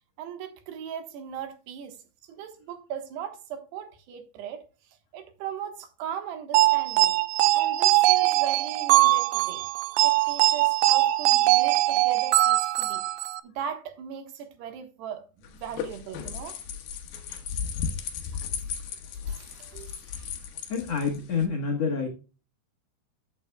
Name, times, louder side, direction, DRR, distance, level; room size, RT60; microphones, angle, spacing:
voice 1, 0.2-2.0 2.2-7.2 7.5-9.7 10.0-13.0 13.4-16.6 19.2-20.3, right 8 dB, 75° right, 3.3 m, -39 dB
sound 1, 6.5-13.4, right 17 dB, 90° right, 2.8 m, -21 dB
sound 2, 15.4-21.5, left 7 dB, 70° left, 2.9 m, -35 dB
voice 2, 20.7-22.1, left 5 dB, 85° left, 1.4 m, -27 dB
13.5 x 7.9 x 2.2 m
omnidirectional pair, 5.0 m